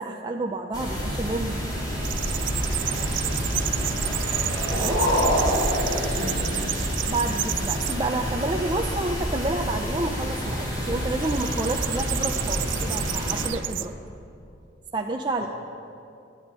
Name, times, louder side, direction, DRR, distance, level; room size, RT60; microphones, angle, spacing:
voice 1, 0.0-1.6 4.7-5.1 7.1-13.9 14.9-15.5, right 2 dB, 25° right, 2 dB, 0.5 m, -29 dB
sound 1, 0.7-13.5, equal, 20° left, 3.3 m, -29 dB
sound 2, 2.0-8.0 8.5-9.0 11.2-13.9, right 15 dB, 75° right, 0.5 m, -31 dB
voice 2, 2.8-3.3 4.0-4.2 5.8-6.9 15.4-15.5, equal, 55° left, -1 dB, 3.3 m, -38 dB
sound 3, 4.2-6.8, equal, 80° left, 4.3 m, -25 dB
12.5 x 10.0 x 9.6 m, 2.6 s
head